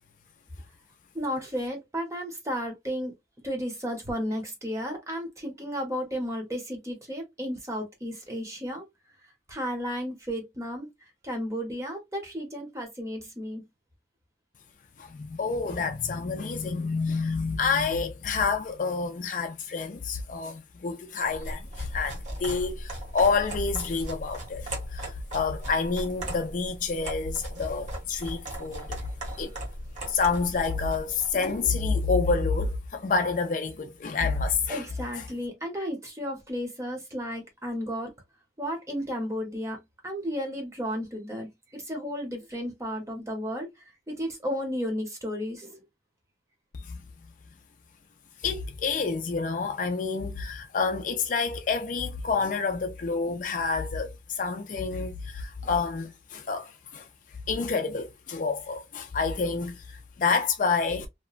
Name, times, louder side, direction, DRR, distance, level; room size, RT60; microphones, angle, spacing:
voice 1, 1.1-3.1 3.4-8.8 9.2-10.9 11.2-13.6 34.7-38.1 38.6-43.7 44.1-45.8, equal, 15° right, 0.8 m, -33 dB
voice 2, 15.0-29.0 29.4-29.6 30.1-34.8 46.8-47.0 48.4-57.1 57.5-61.1, left 4 dB, 45° left, 0.4 m, -28 dB
sound 1, 21.3-31.6, right 1 dB, 40° right, 1.0 m, -38 dB
2.9 x 2.2 x 2.4 m
head